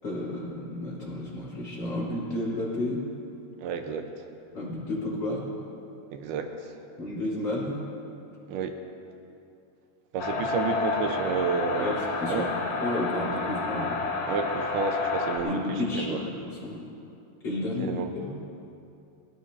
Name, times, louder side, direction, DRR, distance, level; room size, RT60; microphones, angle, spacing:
voice 1, 0.0-3.0 4.5-5.5 7.0-7.8 11.8-14.0 15.4-16.8 17.4-18.3, left 1 dB, 25° left, -7 dB, 4.6 m, -32 dB
voice 2, 3.6-4.1 6.1-6.7 8.5-8.8 10.1-12.0 12.3-12.5 14.3-16.2 17.8-18.1, right 5 dB, 75° right, 5 dB, 2.7 m, -31 dB
sound 1, 10.2-15.4, left 4 dB, 70° left, 4.1 m, -30 dB
25.0 x 16.0 x 2.9 m, 2.6 s
omnidirectional pair, 5.1 m